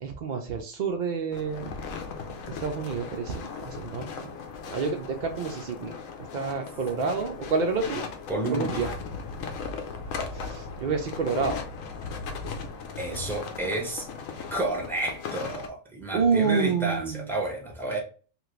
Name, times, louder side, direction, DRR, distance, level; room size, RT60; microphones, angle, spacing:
voice 1, 0.0-1.8 2.5-4.3 4.7-5.9 6.3-8.0 8.5-8.9 10.3-11.6 16.1-17.4, right 5 dB, 75° right, 3 dB, 0.4 m, -28 dB
sound 1, 1.3-15.7, left 5 dB, 80° left, 1.0 m, -37 dB
voice 2, 8.3-8.9 13.0-14.1 14.5-18.0, right 2 dB, 5° left, -1 dB, 0.5 m, -31 dB
3.0 x 2.5 x 3.0 m, 0.38 s
omnidirectional pair, 1.4 m